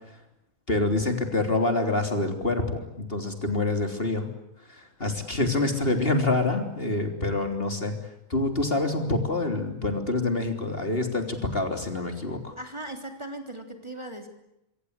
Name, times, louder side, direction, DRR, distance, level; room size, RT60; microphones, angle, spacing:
voice 1, 0.7-4.3 4.7-8.0 8.3-12.5, left 2 dB, 40° left, 5 dB, 3.7 m, -26 dB
voice 2, 12.6-14.3, right 1 dB, 20° right, 5 dB, 3.4 m, -39 dB
26.5 x 25.0 x 8.3 m, 0.82 s
omnidirectional pair, 1.5 m